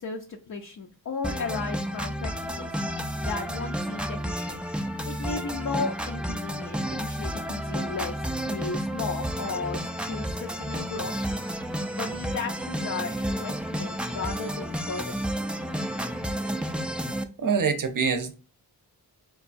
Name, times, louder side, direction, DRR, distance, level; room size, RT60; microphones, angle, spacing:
voice 1, 0.0-4.7 5.0-11.4 11.9-15.4, left 4 dB, 50° left, 0.5 m, -35 dB
sound 1, 1.2-17.2, equal, 5° right, 0.3 m, -31 dB
voice 2, 17.4-18.3, right 5 dB, 55° right, 0.6 m, -25 dB
4.6 x 2.3 x 2.5 m
wide cardioid pair, 60°, 40 cm